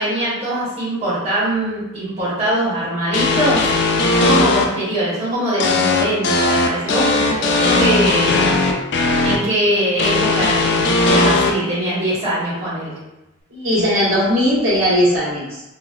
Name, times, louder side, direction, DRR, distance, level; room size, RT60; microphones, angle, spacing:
voice 1, 0.0-8.4 9.2-13.0, right 1 dB, 30° right, -10 dB, 1.1 m, -22 dB
sound 1, 3.1-4.6 5.6-9.4 10.0-11.5, left 3 dB, 55° left, 0.3 m, -17 dB
voice 2, 13.5-15.6, equal, 70° right, -9 dB, 1.3 m, -18 dB
3.9 x 2.2 x 2.3 m, 0.98 s
head